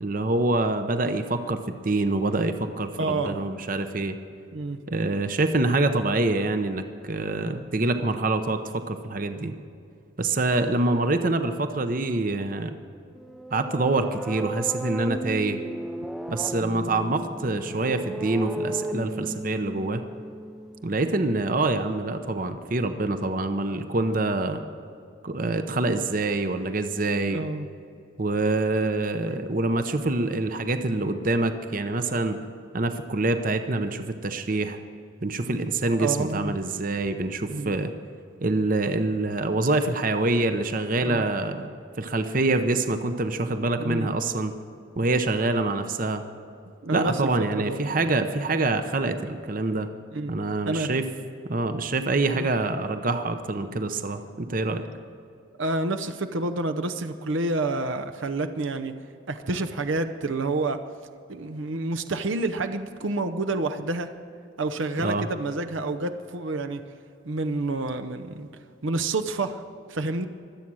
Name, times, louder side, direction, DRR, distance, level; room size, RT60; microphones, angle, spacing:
voice 1, 0.0-4.2 4.9-8.6 8.9-9.5 10.2-12.7 13.5-15.6 16.3-20.0 20.8-24.6 25.2-27.4 28.2-32.4 32.7-34.8 35.2-37.9 38.4-41.7 42.0-44.5 45.0-46.2 46.9-49.9 50.3-51.0 51.5-54.9 65.0-65.3, right 2 dB, 40° right, 8 dB, 0.8 m, -25 dB
voice 2, 3.0-3.4 4.5-4.8 27.2-27.7 36.0-36.6 37.5-37.8 41.0-41.3 43.8-44.1 46.8-47.8 50.1-50.3 50.6-50.9 52.3-52.5 55.6-58.9 59.3-60.8 61.3-64.1 64.6-66.8 67.2-68.5 68.8-69.6 69.9-70.2, right 2 dB, 75° right, 7 dB, 0.8 m, -28 dB
sound 1, 13.1-20.9, right 1 dB, ahead, 0.5 m, -35 dB
24.0 x 8.6 x 6.3 m, 2.5 s
head